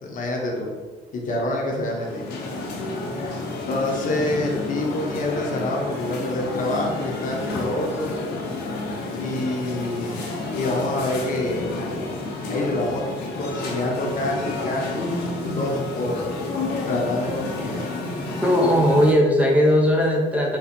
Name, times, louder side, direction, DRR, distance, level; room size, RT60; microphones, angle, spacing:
voice 1, 0.0-0.7 1.1-2.3 3.7-8.1 9.1-11.7 12.5-13.0 13.4-15.1 15.6-16.2 16.9-17.8 18.1-18.2, left 2 dB, 50° left, -1 dB, 1.0 m, -27 dB
sound 1, 1.8-19.1, left 2 dB, 75° left, 1.0 m, -30 dB
voice 2, 18.4-20.6, equal, 10° right, -1 dB, 0.7 m, -18 dB
4.4 x 2.3 x 4.3 m, 1.4 s
cardioid pair, 110°, 17 cm